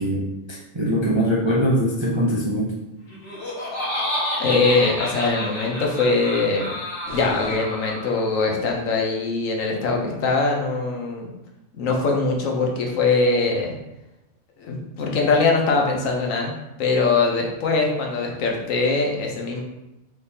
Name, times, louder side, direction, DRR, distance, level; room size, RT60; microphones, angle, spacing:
voice 1, 0.0-2.7, equal, 40° right, -5 dB, 0.4 m, -22 dB
Laughter, 3.1-8.3, left 1 dB, 25° left, 1.2 m, -29 dB
voice 2, 4.4-6.7 7.1-11.3 11.7-13.7 14.6-19.6, left 3 dB, 90° left, 1 dB, 1.2 m, -22 dB
sound 1, 7.1-8.5, right 1 dB, 65° left, 1.7 m, -38 dB
4.9 x 3.4 x 2.8 m, 0.94 s
omnidirectional pair, 1.3 m